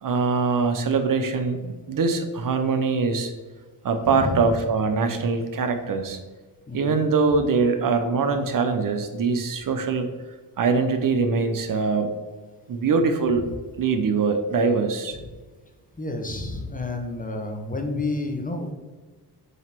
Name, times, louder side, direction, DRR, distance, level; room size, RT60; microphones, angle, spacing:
voice 1, 0.0-3.3 3.8-6.2 6.7-10.1 10.6-12.1 12.7-13.4 13.8-15.2, right 4 dB, 55° right, 7 dB, 0.8 m, -23 dB
voice 2, 4.0-4.5 6.7-7.0 15.2-15.3 16.0-18.7, left 2 dB, 20° left, 3 dB, 1.1 m, -30 dB
7.8 x 3.0 x 6.0 m, 1.3 s
cardioid pair, 85°, 39 cm